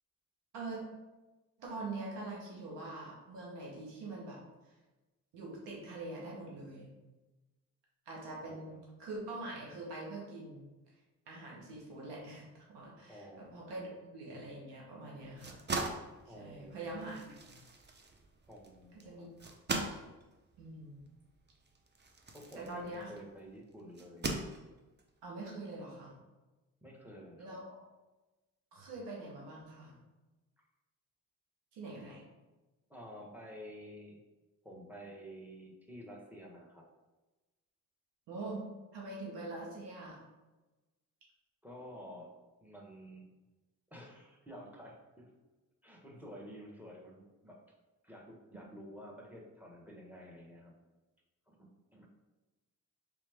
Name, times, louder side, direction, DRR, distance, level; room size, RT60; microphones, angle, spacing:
voice 1, 1.6-4.4 5.3-6.9 8.1-10.7 11.3-15.6 16.3-17.3 19.0-19.5 20.6-21.0 22.5-23.1 25.2-26.1 27.4-27.8 28.7-29.9 31.7-32.2 38.3-38.6 38.9-40.2, right 2 dB, 90° right, -3 dB, 1.2 m, -44 dB
voice 2, 8.4-8.9 13.1-13.8 16.3-17.1 18.5-19.3 22.3-24.3 26.8-27.6 32.9-34.2 34.6-36.9 41.6-42.3 42.6-43.3 43.9-45.3 45.8-47.6 48.0-50.7 51.5-52.1, equal, 5° right, -1 dB, 1.1 m, -51 dB
sound 1, 15.2-23.3 23.9-25.0, right 3 dB, 25° right, 0.6 m, -41 dB
3.4 x 3.1 x 3.4 m, 1.1 s
supercardioid pair, 45°, 40 cm